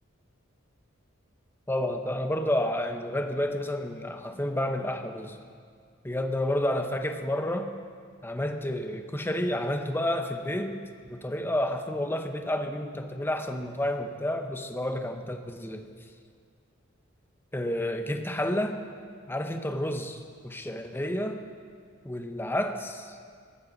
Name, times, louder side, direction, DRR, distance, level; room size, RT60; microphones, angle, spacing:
voice 1, 1.7-5.4 6.0-7.7 8.2-10.8 11.1-15.9 17.5-18.8 19.3-21.4 22.0-23.1, left 1 dB, 10° left, 6 dB, 0.9 m, -30 dB
19.0 x 14.0 x 4.1 m, 2.1 s
head